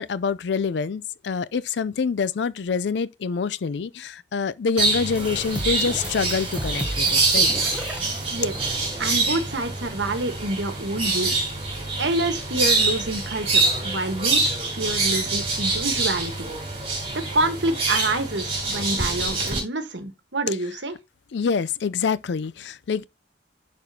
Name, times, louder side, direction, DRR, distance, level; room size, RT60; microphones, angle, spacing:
voice 1, 0.0-7.5 20.5-20.6 21.3-23.1, left 5 dB, 70° left, 0.4 m, -26 dB
sound 1, 4.8-19.6, right 3 dB, 30° right, 3.0 m, -25 dB
sound 2, 5.1-9.3, right 1 dB, 5° right, 0.9 m, -35 dB
voice 2, 9.0-11.4 12.0-14.4 14.7-16.5 17.1-21.0, right 2 dB, 75° right, 1.3 m, -27 dB
11.0 x 4.2 x 2.8 m
head